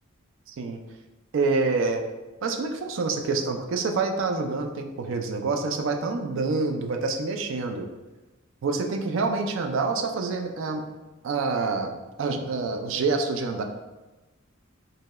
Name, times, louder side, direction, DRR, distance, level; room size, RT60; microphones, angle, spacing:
voice 1, 0.5-0.8 1.3-2.0 2.4-7.9 8.6-10.8 11.2-13.6, right 4 dB, 65° right, 4 dB, 0.4 m, -27 dB
3.0 x 2.7 x 2.2 m, 1.1 s
head